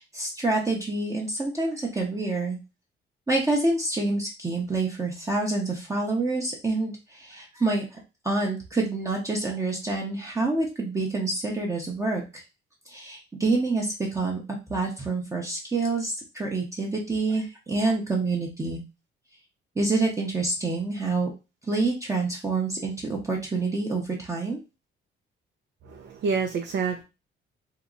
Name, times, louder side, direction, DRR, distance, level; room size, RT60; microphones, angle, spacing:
voice 1, 0.0-2.6 3.3-8.0 8.2-12.4 12.9-14.4 14.7-18.8 19.8-21.3 21.7-24.6, right 3 dB, 15° right, -2 dB, 0.8 m, -27 dB
voice 2, 25.8-27.0, right 5 dB, 60° right, 3 dB, 0.5 m, -28 dB
2.9 x 2.1 x 3.7 m, 0.28 s
cardioid pair, 90°, 20 cm